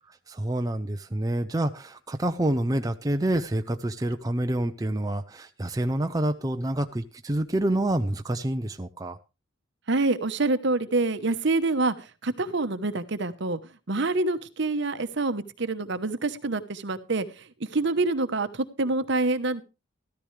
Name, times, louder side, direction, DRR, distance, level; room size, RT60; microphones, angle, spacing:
voice 1, 0.3-9.2, right 1 dB, 20° right, 6 dB, 0.5 m, -27 dB
voice 2, 9.9-13.6 13.9-19.6, right 2 dB, 60° right, 11 dB, 1.0 m, -26 dB
14.0 x 13.5 x 3.3 m, 0.30 s
head